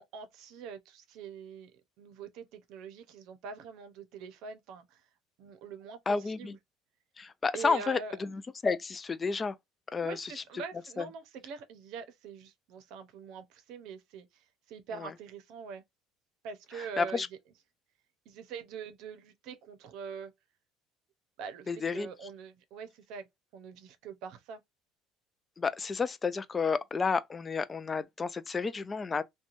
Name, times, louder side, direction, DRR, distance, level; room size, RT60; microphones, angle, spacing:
voice 1, 0.0-1.7 2.0-5.0 5.4-6.6 7.5-8.2 10.0-15.8 16.4-17.2 18.3-20.3 21.4-23.3 23.5-24.6, right 6 dB, 70° right, 0.6 m, -44 dB
voice 2, 6.1-6.5 7.2-9.5 9.9-10.3 11.0-11.1 15.0-15.1 17.0-17.3 21.7-22.1 25.6-29.2, left 4 dB, 25° left, 0.3 m, -31 dB
3.0 x 2.2 x 2.4 m
cardioid pair, 115°, 0 cm